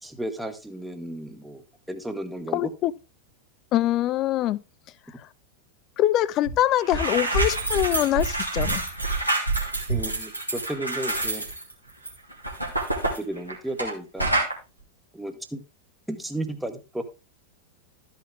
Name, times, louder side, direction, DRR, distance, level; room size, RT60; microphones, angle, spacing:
voice 1, 0.0-1.6 1.9-2.7 9.9-11.4 13.0-14.3 15.1-15.6 16.1-17.0, right 1 dB, 5° right, 1.1 m, -33 dB
voice 2, 2.5-2.9 3.7-4.6 6.0-8.8, left 13 dB, 35° left, 0.5 m, -23 dB
sound 1, 6.4-6.6 6.8-13.9 14.2-14.5, right 2 dB, 85° right, 2.1 m, -27 dB
13.0 x 5.8 x 3.2 m
figure-of-eight pair, 90°, 0 cm